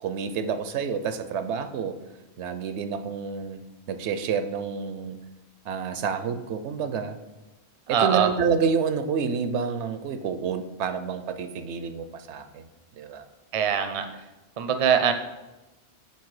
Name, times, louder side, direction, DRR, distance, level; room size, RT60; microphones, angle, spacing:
voice 1, 0.0-2.0 2.4-3.6 3.9-5.2 5.7-7.2 7.9-12.7 13.0-13.2, right 6 dB, 85° right, 10 dB, 0.9 m, -28 dB
voice 2, 7.9-8.3 13.5-14.1 14.6-15.1, right 7 dB, 45° right, 8 dB, 0.4 m, -22 dB
7.2 x 3.9 x 4.7 m, 1.0 s
omnidirectional pair, 1.1 m